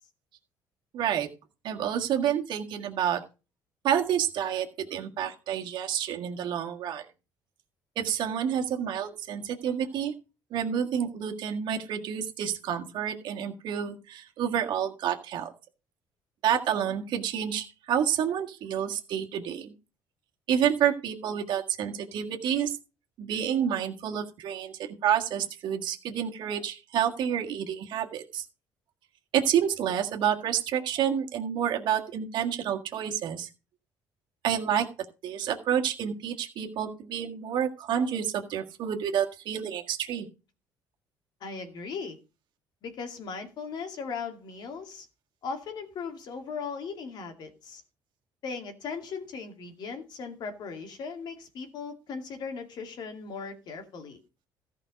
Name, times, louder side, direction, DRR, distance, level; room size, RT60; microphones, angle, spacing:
voice 1, 0.9-1.3 1.6-3.2 3.8-7.1 8.0-10.1 10.5-15.5 16.4-19.7 20.5-22.8 23.2-24.7 25.0-28.5 29.3-33.5 34.4-34.9 35.2-40.3, right 9 dB, 65° right, 1.7 m, -29 dB
voice 2, 41.4-42.2 42.8-45.1 45.4-47.8 48.4-54.2, left 5 dB, 60° left, 2.3 m, -38 dB
14.0 x 5.4 x 5.1 m
cardioid pair, 115°, 8 cm